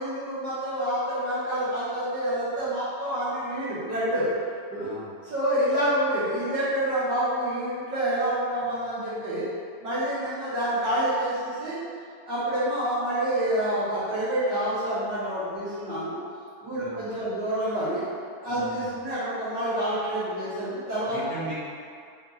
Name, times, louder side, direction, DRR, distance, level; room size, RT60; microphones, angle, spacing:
voice 1, 0.0-4.3 4.7-4.9 5.2-9.4 9.8-11.8 12.2-16.2 16.6-18.0 18.4-21.2, right 1 dB, 65° right, -11 dB, 1.6 m, -27 dB
voice 2, 4.8-5.1 16.8-17.0 18.5-19.0 21.1-21.5, right 2 dB, 40° right, -14 dB, 1.5 m, -38 dB
5.8 x 2.7 x 2.7 m, 2.3 s
omnidirectional pair, 2.2 m